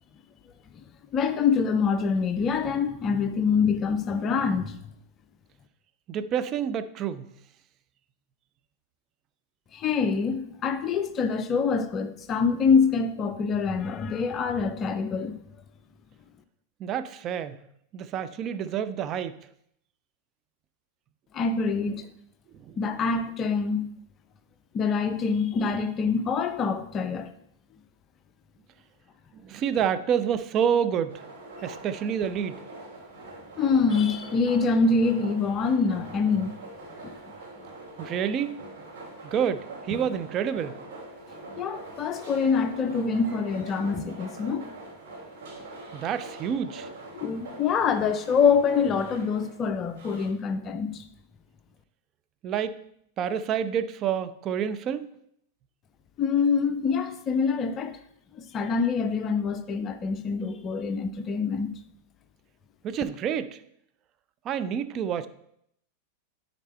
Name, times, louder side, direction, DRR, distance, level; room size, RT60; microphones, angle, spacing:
voice 1, 1.1-4.8 9.7-15.4 21.3-22.1 22.8-23.9 24.7-27.3 33.6-36.5 37.0-37.3 39.9-40.0 41.6-44.6 47.2-51.0 56.2-58.0 58.3-61.7, left 5 dB, 30° left, 0.5 m, -25 dB
voice 2, 6.1-7.3 16.8-17.6 17.9-19.4 22.6-22.8 29.3-31.2 31.6-32.6 38.0-38.6 39.2-40.8 45.9-46.9 52.4-52.8 53.2-55.1 62.8-63.6 64.4-65.3, right 8 dB, 35° right, 0.5 m, -28 dB
sound 1, 31.1-50.3, right 2 dB, 55° right, 2.8 m, -43 dB
9.9 x 4.2 x 4.4 m
figure-of-eight pair, 90°, 0 cm